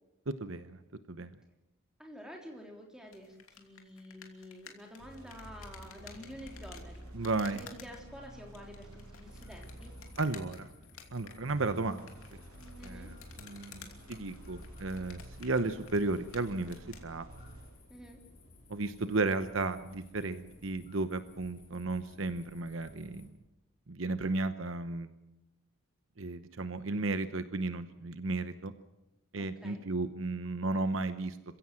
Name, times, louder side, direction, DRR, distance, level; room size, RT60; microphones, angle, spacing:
voice 1, 0.3-0.8 1.1-1.3 7.1-7.6 10.2-10.7 11.1-12.1 12.8-17.2 18.7-23.3 23.9-25.1 26.2-28.7 29.3-31.6, right 3 dB, 60° right, 11 dB, 1.0 m, -34 dB
voice 2, 2.0-7.3 7.5-9.9 12.8-13.1 17.9-18.2 29.4-29.8, equal, 5° right, 0 dB, 3.5 m, -49 dB
sound 1, 3.1-17.1, left 6 dB, 75° left, 2.8 m, -54 dB
sound 2, 5.0-10.6 11.5-17.9, right 1 dB, 85° right, 6.3 m, -50 dB
sound 3, 9.2-23.3, left 2 dB, 35° left, 5.3 m, -58 dB
27.0 x 16.0 x 7.7 m, 0.97 s
head